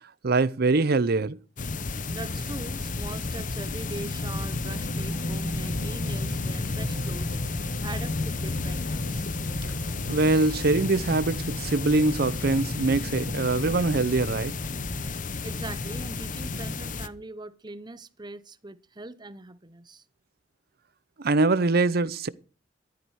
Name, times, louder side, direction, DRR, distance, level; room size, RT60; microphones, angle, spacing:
voice 1, 0.2-1.4 10.1-14.5 21.2-22.3, right 3 dB, 55° right, 0.7 m, -23 dB
sound 1, 1.6-17.1, left 3 dB, 45° left, 0.9 m, -31 dB
voice 2, 2.1-7.4 7.8-9.3 15.4-20.0, right 2 dB, 25° right, 0.8 m, -41 dB
sound 2, 4.7-12.6, right 2 dB, 80° right, 1.1 m, -46 dB
14.0 x 12.5 x 4.8 m
head